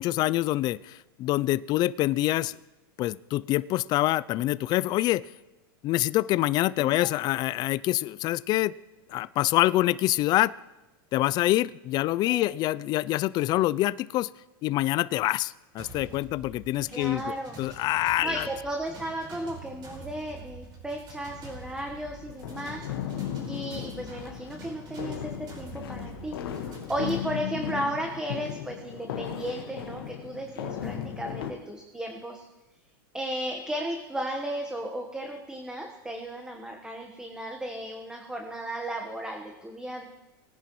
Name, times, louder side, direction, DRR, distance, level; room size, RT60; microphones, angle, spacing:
voice 1, 0.0-2.6 3.0-5.2 5.8-8.7 9.1-10.5 11.1-14.3 14.6-18.5, left 16 dB, 35° left, 19 dB, 0.3 m, -26 dB
voice 2, 6.8-7.1 12.2-12.4 16.9-17.6 18.2-22.8 23.5-26.4 26.6-32.4 33.1-40.1, right 1 dB, 5° right, 2 dB, 1.2 m, -35 dB
sound 1, 15.8-27.1, right 2 dB, 40° right, 4.7 m, -46 dB
sound 2, 21.4-31.5, left 9 dB, 85° left, 1.5 m, -36 dB
21.5 x 10.5 x 3.1 m, 1.0 s
supercardioid pair, 125°, 12 cm